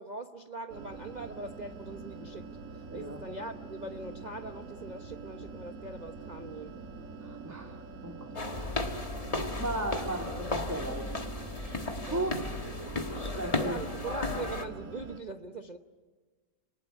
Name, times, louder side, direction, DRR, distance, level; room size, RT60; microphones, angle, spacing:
voice 1, 0.0-2.5 2.7-6.8 12.0-12.4 13.6-15.8, right 2 dB, 35° right, 6 dB, 0.8 m, -41 dB
sound 1, 0.7-15.2, right 4 dB, 50° right, 1.7 m, -45 dB
voice 2, 2.9-3.2 7.2-7.8 8.0-8.8 9.4-11.1 12.1-12.7 13.1-13.8, right 1 dB, 10° right, 1 dB, 1.8 m, -36 dB
sound 2, 8.4-14.7, left 2 dB, 20° left, 1.5 m, -34 dB
28.5 x 19.5 x 9.9 m, 1.3 s
omnidirectional pair, 1.8 m